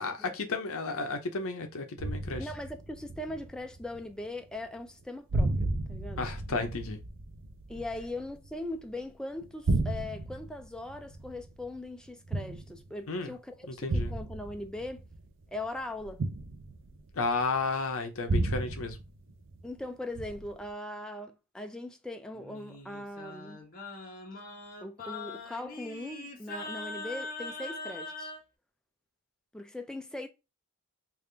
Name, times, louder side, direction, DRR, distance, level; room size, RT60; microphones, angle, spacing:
voice 1, 0.0-2.5 6.2-7.0 13.1-13.3 13.7-14.2 17.1-19.0, left 3 dB, 65° left, 0.7 m, -33 dB
sound 1, 2.0-4.2 4.5-5.0 5.3-9.0 9.4-13.0 13.9-17.4 18.3-19.8 20.1-20.7, right 2 dB, 55° right, 0.5 m, -34 dB
voice 2, 2.4-6.3 7.7-15.0 15.5-16.2 19.6-23.6 24.8-28.3 29.5-30.3, left 1 dB, 5° left, 0.4 m, -40 dB
Singing, 22.3-28.4, left 3 dB, 40° left, 1.0 m, -42 dB
3.5 x 2.4 x 3.2 m
head